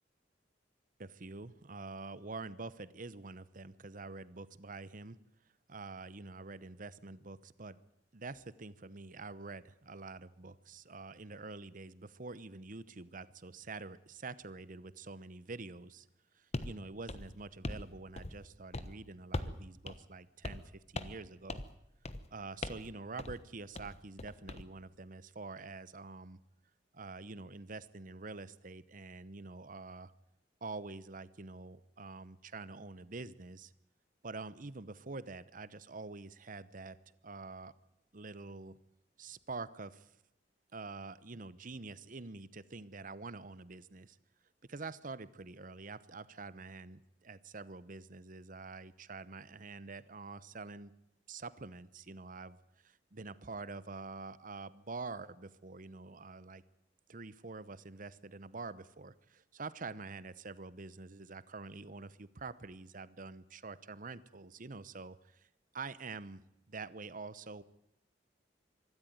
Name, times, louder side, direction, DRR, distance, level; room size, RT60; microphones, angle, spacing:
voice 1, 1.0-5.2 5.7-7.8 8.1-16.1 16.3-21.6 22.3-26.4 26.9-30.1 30.6-33.7 34.2-37.0 37.2-37.7 38.1-38.8 39.2-40.1 40.7-44.2 44.7-50.9 51.3-52.6 52.8-56.6 57.1-65.5 65.7-67.6, right 3 dB, 50° right, 17 dB, 1.0 m, -46 dB
sound 1, 16.5-16.7 17.1-17.9 18.2-18.5 18.7-18.9 19.3-19.6 19.9-20.0 20.4-20.7 20.9-21.2 21.5-21.7 22.0-22.3 22.6-22.9 23.2-23.4 23.7-24.6, left 2 dB, 35° left, 1.2 m, -40 dB
24.5 x 13.0 x 9.5 m, 0.84 s
head